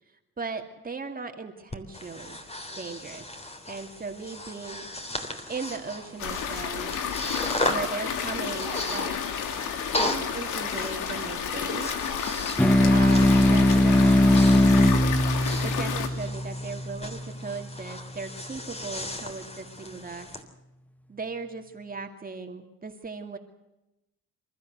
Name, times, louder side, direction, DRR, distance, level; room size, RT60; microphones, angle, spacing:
voice 1, 0.4-2.4 2.8-3.2 3.7-4.9 5.5-6.9 7.7-9.2 10.0-11.9 12.9-14.5 15.6-20.3 21.1-23.4, right 4 dB, 30° right, 4 dB, 2.5 m, -37 dB
Breathing, 1.7-20.4, left 1 dB, 20° left, 3.6 m, -36 dB
sound 1, 6.2-16.1, left 7 dB, 85° left, 2.7 m, -31 dB
sound 2, 12.6-17.4, left 1 dB, 5° left, 0.8 m, -20 dB
28.0 x 14.0 x 8.0 m, 0.94 s
cardioid pair, 90°, 30 cm